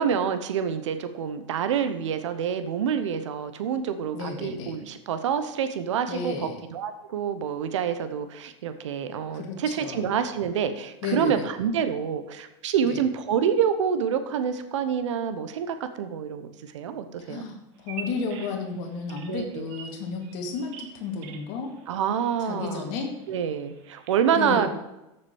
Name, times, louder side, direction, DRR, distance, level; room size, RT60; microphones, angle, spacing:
voice 1, 0.0-17.5 19.3-19.7 21.9-23.0 23.3-24.7, right 8 dB, 85° right, 10 dB, 0.9 m, -27 dB
voice 2, 4.1-4.8 6.1-6.7 9.3-10.1 11.0-11.4 12.8-13.0 17.2-17.6 17.9-21.7 22.5-23.1 24.4-24.7, left 4 dB, 60° left, 2 dB, 2.2 m, -32 dB
Bird vocalization bird call bird song, 17.7-24.1, right 7 dB, 65° right, 1.4 m, -46 dB
7.0 x 6.7 x 7.2 m, 0.93 s
hypercardioid pair, 105°, 15 cm